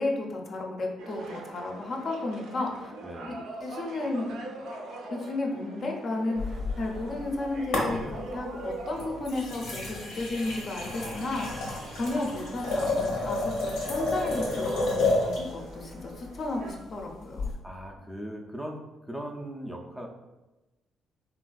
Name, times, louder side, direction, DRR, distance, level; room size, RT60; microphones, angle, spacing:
voice 1, 0.0-2.9 3.3-4.4 5.1-11.5 12.0-17.5, left 2 dB, 45° left, 1 dB, 0.5 m, -33 dB
sound 1, 1.0-16.7, right 2 dB, 85° right, 0.5 m, -44 dB
voice 2, 3.0-3.4 17.5-20.1, right 1 dB, 5° right, 0 dB, 0.4 m, -39 dB
sound 2, 6.4-7.3 7.7-8.4 9.0-15.5 17.4-17.5, left 2 dB, 90° left, 0.8 m, -30 dB
3.3 x 2.4 x 2.3 m, 1.1 s
cardioid pair, 90°, 0 cm